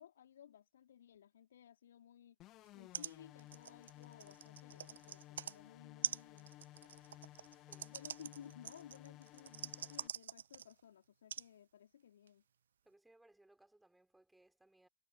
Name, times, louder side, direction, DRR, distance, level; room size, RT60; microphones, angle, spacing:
voice 1, 0.0-2.4 2.7-6.5 7.8-12.4, left 9 dB, 65° left, 4.0 m, -58 dB
sound 1, 2.4-10.1, left 16 dB, 35° left, 2.2 m, -57 dB
sound 2, 2.7-2.8 2.9-3.1 3.4-5.6 6.0-10.8 11.3-11.5 12.3-12.4, right 9 dB, 65° right, 0.5 m, -45 dB
voice 2, 7.5-7.9 12.8-14.9, right 2 dB, 5° right, 6.5 m, -68 dB
figure-of-eight pair, 90°, 0 cm